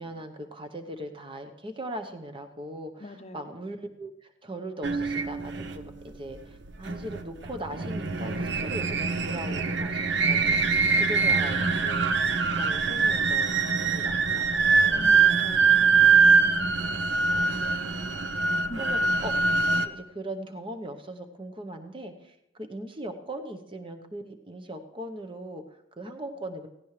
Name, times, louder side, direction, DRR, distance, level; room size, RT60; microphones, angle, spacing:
voice 1, 0.0-15.1 16.4-17.0 17.3-19.4 19.8-26.7, right 1 dB, 25° right, 6 dB, 1.0 m, -40 dB
voice 2, 3.0-3.6 14.9-16.5 18.7-19.1, left 1 dB, 30° left, 9 dB, 0.8 m, -44 dB
sound 1, 4.8-19.9, right 4 dB, 55° right, 0.7 m, -24 dB
16.5 x 15.5 x 3.3 m, 0.84 s
head